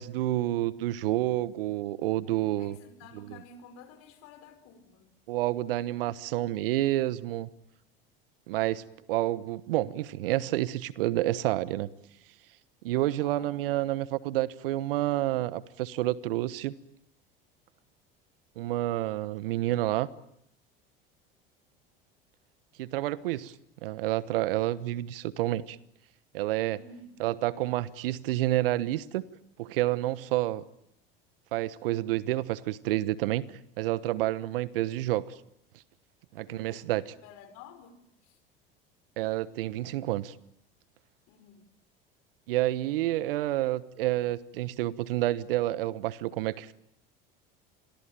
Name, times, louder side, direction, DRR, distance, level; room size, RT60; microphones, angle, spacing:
voice 1, 0.0-2.8 3.1-3.4 5.3-7.5 8.5-11.9 12.8-16.7 18.6-20.1 22.8-23.5 23.8-25.8 26.3-26.8 27.2-29.2 29.6-30.6 31.5-33.5 33.8-35.3 36.3-37.0 39.2-40.3 42.5-46.7, right 15 dB, 75° right, 18 dB, 1.2 m, -29 dB
voice 2, 2.6-5.1 12.9-13.6 26.8-27.2 36.5-37.9 38.2-38.4 41.3-41.7, left 5 dB, 60° left, 9 dB, 5.5 m, -52 dB
27.5 x 22.5 x 9.0 m, 0.74 s
hypercardioid pair, 75°, 29 cm